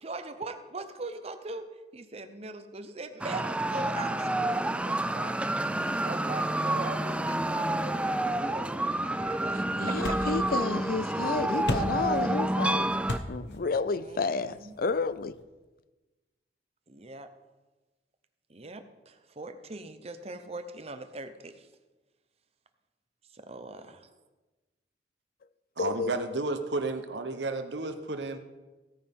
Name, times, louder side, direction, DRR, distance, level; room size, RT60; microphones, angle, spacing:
voice 1, 0.0-1.7 1.9-5.4 6.0-9.6 9.9-10.2 13.9-14.7 16.9-17.3 18.5-21.7 23.3-24.1, right 3 dB, 35° right, 0.8 m, -41 dB
sound 1, 3.2-13.2, right 1 dB, 5° right, 0.3 m, -29 dB
sound 2, 8.3-15.4, left 1 dB, 75° left, 1.2 m, -40 dB
voice 2, 9.8-12.9 13.3-15.4 25.8-26.1, left 4 dB, 55° left, 0.4 m, -31 dB
voice 3, 25.8-28.4, right 2 dB, 75° right, 1.0 m, -32 dB
16.5 x 9.6 x 3.7 m
head